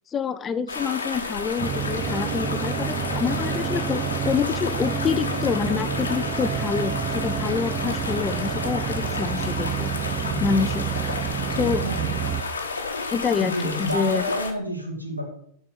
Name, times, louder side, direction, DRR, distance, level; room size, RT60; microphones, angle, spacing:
voice 1, 0.1-9.9 10.4-10.9 11.5-11.8 13.1-14.3, left 6 dB, 25° left, 13 dB, 0.5 m, -27 dB
sound 1, 0.7-14.5, left 4 dB, 75° left, 1.1 m, -31 dB
sound 2, 1.6-12.4, right 8 dB, 30° right, 0.7 m, -29 dB
voice 2, 10.3-10.6 11.8-12.1 13.4-15.2, equal, 85° right, 2 dB, 2.4 m, -29 dB
6.8 x 5.4 x 6.6 m, 0.66 s
figure-of-eight pair, 90°, 0 cm